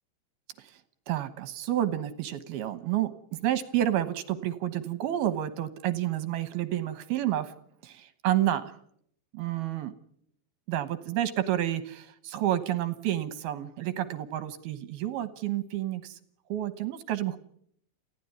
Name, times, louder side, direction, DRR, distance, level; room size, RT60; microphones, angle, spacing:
voice 1, 1.1-7.5 7.8-8.7 9.3-9.9 10.7-16.2 16.5-17.4, right 12 dB, 70° right, 11 dB, 2.7 m, -30 dB
29.0 x 15.5 x 9.4 m, 0.69 s
omnidirectional pair, 5.2 m